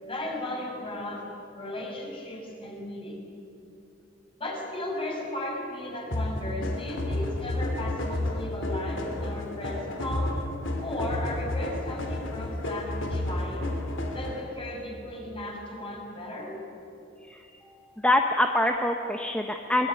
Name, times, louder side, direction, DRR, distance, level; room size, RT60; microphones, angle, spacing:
voice 1, 0.0-3.2 4.4-10.4 10.8-13.7 14.1-16.6, left 1 dB, 30° left, -1 dB, 6.4 m, -35 dB
sound 1, 6.1-14.6, left 1 dB, 80° left, 3.2 m, -31 dB
voice 2, 18.0-19.9, left 1 dB, 5° left, 3 dB, 1.1 m, -25 dB
24.5 x 20.5 x 9.9 m, 2.8 s
head